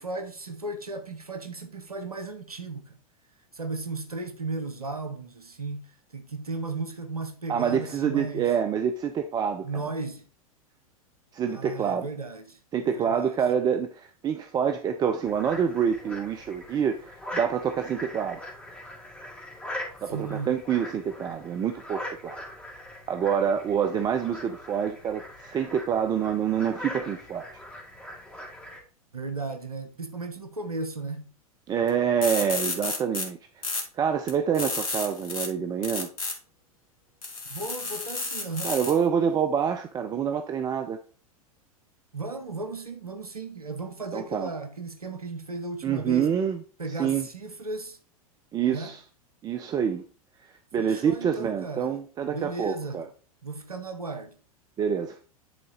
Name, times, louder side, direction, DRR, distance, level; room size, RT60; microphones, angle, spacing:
voice 1, 0.0-3.0 3.5-8.5 9.6-10.2 11.5-13.4 20.1-20.6 29.1-31.3 37.5-38.8 42.1-46.3 46.8-48.0 48.7-48.9 50.8-51.9 52.3-53.0 53.4-54.4, right 3 dB, 85° right, 0.9 m, -35 dB
voice 2, 7.5-9.7 11.3-12.1 12.7-18.4 20.0-22.4 23.1-27.5 31.7-36.1 38.6-41.0 44.1-44.5 45.8-46.6 47.0-47.3 48.5-49.0 49.4-50.0 50.5-53.1 54.8-55.2, right 8 dB, 20° right, 0.5 m, -27 dB
sound 1, 15.2-28.8, left 1 dB, 5° left, 2.7 m, -41 dB
sound 2, 31.9-32.0 32.2-33.2 33.6-33.8 34.3-35.5 35.8-36.3 37.2-39.0, left 3 dB, 65° left, 2.1 m, -31 dB
10.0 x 4.0 x 3.9 m
figure-of-eight pair, 90°, 19 cm